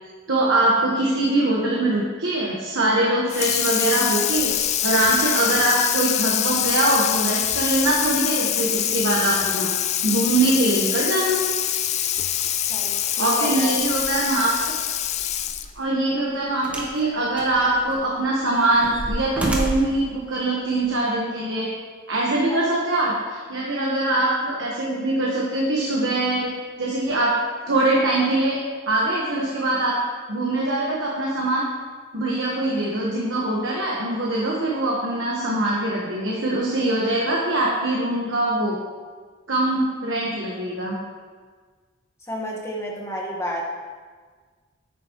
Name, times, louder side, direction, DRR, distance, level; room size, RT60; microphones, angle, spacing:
voice 1, 0.3-9.7 10.0-11.4 13.2-14.7 15.7-21.7 22.1-26.5 26.8-27.4 27.7-28.6 28.9-30.0 30.3-31.6 32.1-38.8 39.5-41.0, right 2 dB, 70° right, -3 dB, 1.3 m, -23 dB
Water tap faucet / Sink (filling or washing), 3.3-15.8, left 11 dB, 35° left, 0.4 m, -24 dB
voice 2, 12.6-13.7 22.5-22.6 42.3-43.6, equal, 15° left, -2 dB, 1.4 m, -31 dB
sound 1, 15.5-15.6 16.6-17.0 17.4-18.1 18.5-20.0 20.9-21.0, equal, 5° right, 1.1 m, -29 dB
10.0 x 9.0 x 3.1 m, 1.5 s
head